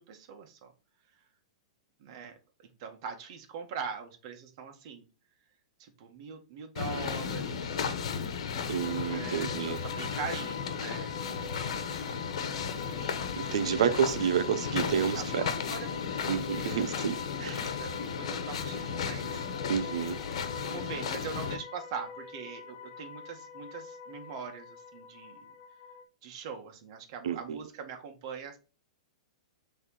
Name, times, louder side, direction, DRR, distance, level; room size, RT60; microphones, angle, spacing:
voice 1, 0.1-0.7 2.0-2.3 2.6-5.1 5.8-7.8 9.1-11.5 11.9-12.9 14.2-14.3 14.9-16.9 17.7-19.5 20.6-25.5 26.2-28.6, right 6 dB, 50° right, 1.8 m, -42 dB
sound 1, 6.7-21.5, left 6 dB, 70° left, 1.2 m, -35 dB
voice 2, 8.7-9.8 13.0-15.4 16.3-17.6 19.7-20.2 27.2-27.6, right 8 dB, 75° right, 0.8 m, -30 dB
sound 2, 8.8-26.0, left 6 dB, 45° left, 1.3 m, -44 dB
6.5 x 3.6 x 4.9 m
hypercardioid pair, 130°, 3 cm